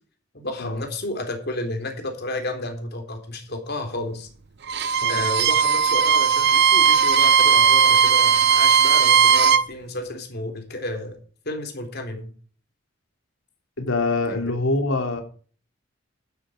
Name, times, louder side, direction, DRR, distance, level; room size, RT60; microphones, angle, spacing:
voice 1, 0.3-4.3 5.1-11.2 11.4-12.3 14.3-14.5, left 2 dB, 55° left, 4 dB, 3.6 m, -31 dB
Bowed string instrument, 4.6-9.7, right 7 dB, 55° right, 0.8 m, -17 dB
voice 2, 13.8-15.2, left 2 dB, 85° left, 5 dB, 2.9 m, -24 dB
11.5 x 11.0 x 5.0 m, 0.42 s
head